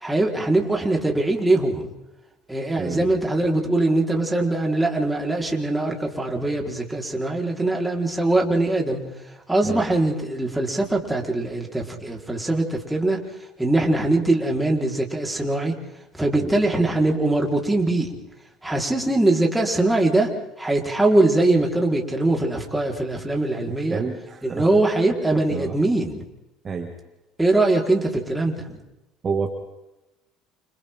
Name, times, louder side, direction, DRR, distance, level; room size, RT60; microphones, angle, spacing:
voice 1, 0.0-1.8 2.5-9.0 9.5-13.2 13.6-15.7 16.2-18.1 18.6-20.3 20.6-24.0 24.4-26.2 27.4-28.6, right 2 dB, 10° right, 0 dB, 4.8 m, -22 dB
voice 2, 23.9-24.7 25.5-25.7 26.6-26.9 29.2-29.5, right 5 dB, 35° right, 3 dB, 2.5 m, -28 dB
29.0 x 28.0 x 3.9 m, 0.97 s
hypercardioid pair, 70°, 0 cm